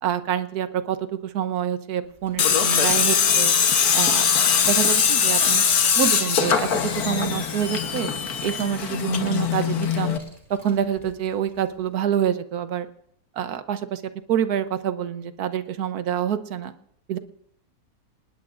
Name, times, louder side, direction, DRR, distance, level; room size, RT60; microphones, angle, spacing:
voice 1, 0.0-3.5 3.9-4.2 4.6-5.6 6.0-8.1 8.4-10.2 10.5-12.9 13.4-14.0 14.3-16.7 17.1-17.2, right 9 dB, 70° right, 11 dB, 1.3 m, -26 dB
Car, 2.2-11.7, left 2 dB, 30° right, 3.0 m, -43 dB
Tools, 2.4-10.2, left 7 dB, 65° left, 1.6 m, -21 dB
28.0 x 19.5 x 2.5 m, 0.68 s
omnidirectional pair, 1.7 m